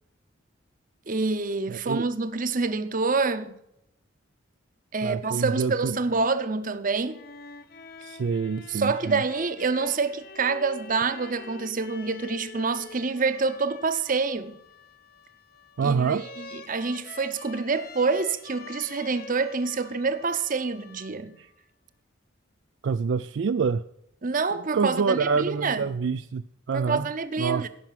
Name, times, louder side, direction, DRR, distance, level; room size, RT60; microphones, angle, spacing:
voice 1, 1.1-3.6 4.9-7.2 8.7-14.6 15.8-21.3 24.2-25.8 26.7-27.7, right 4 dB, 45° right, 0.8 m, -27 dB
voice 2, 1.7-2.1 5.0-6.0 8.0-9.2 15.8-16.3 21.4-21.5 22.8-23.9 24.5-27.1 27.4-27.7, right 5 dB, 65° right, 0.4 m, -27 dB
sound 1, 6.9-21.5, left 4 dB, 50° left, 0.8 m, -46 dB
16.5 x 6.0 x 7.5 m
head